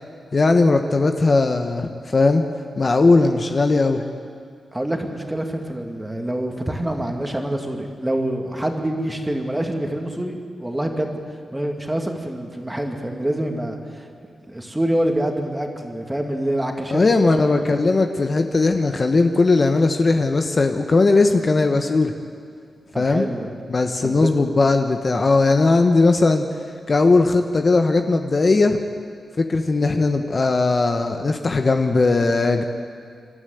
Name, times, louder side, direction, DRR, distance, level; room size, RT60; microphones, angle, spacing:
voice 1, 0.3-2.4 2.8-4.0 16.9-22.1 23.0-23.2 23.7-26.6 26.9-28.8 29.4-32.6, left 3 dB, 35° left, 6 dB, 1.1 m, -18 dB
voice 2, 4.7-11.2 11.5-14.1 14.5-17.0 17.4-17.7 22.9-23.5 24.0-24.3, right 1 dB, 10° right, 3 dB, 2.3 m, -26 dB
27.5 x 13.0 x 9.4 m, 2.2 s
wide cardioid pair, 115°, 0 cm